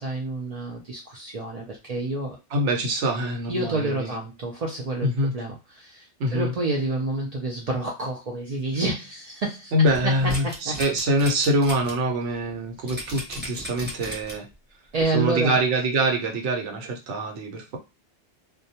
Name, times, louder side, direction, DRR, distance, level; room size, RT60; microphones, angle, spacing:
voice 1, 0.0-2.4 3.5-9.7 10.0-10.7 14.9-15.6, right 2 dB, 90° right, -1 dB, 0.3 m, -29 dB
voice 2, 2.5-4.1 5.0-5.3 6.2-6.5 9.7-14.5 15.1-17.8, right 1 dB, 70° right, 2 dB, 1.0 m, -24 dB
sound 1, 9.8-11.9 12.3-12.4 12.9-14.5 15.0-15.1, equal, 10° right, 0.6 m, -35 dB
2.2 x 2.1 x 2.7 m, 0.27 s
omnidirectional pair, 1.2 m